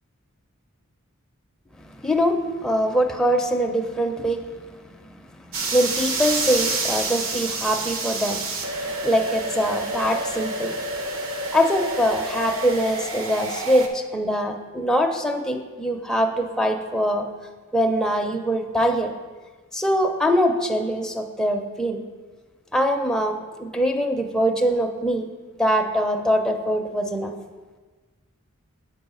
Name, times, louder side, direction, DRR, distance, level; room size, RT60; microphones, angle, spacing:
voice 1, 1.9-4.5 5.4-10.8 11.5-17.3 17.7-19.1 19.7-22.0 22.7-25.3 25.6-27.3, equal, 5° left, 1 dB, 0.4 m, -23 dB
sound 1, 5.5-13.9, right 2 dB, 70° right, 0.8 m, -28 dB
7.6 x 4.7 x 5.3 m, 1.4 s
head